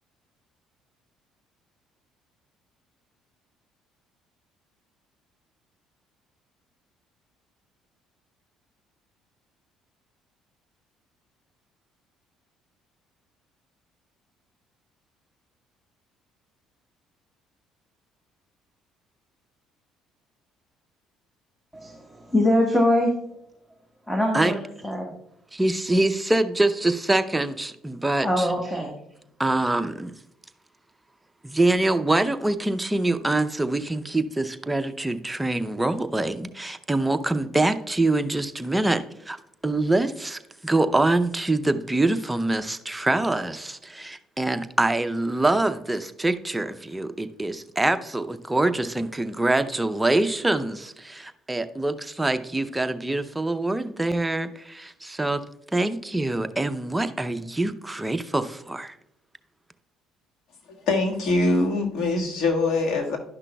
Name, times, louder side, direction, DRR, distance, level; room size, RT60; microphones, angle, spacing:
voice 1, 21.7-23.1 24.1-25.1 28.2-28.9, left 1 dB, 10° left, 1 dB, 1.3 m, -23 dB
voice 2, 25.5-28.5 29.4-30.1 31.4-39.4 39.6-55.4 55.7-59.0, right 2 dB, 10° right, 9 dB, 0.6 m, -25 dB
voice 3, 60.7-63.2, left 2 dB, 65° left, 1 dB, 1.6 m, -23 dB
11.5 x 5.9 x 2.3 m, 0.78 s
supercardioid pair, 75°, 0 cm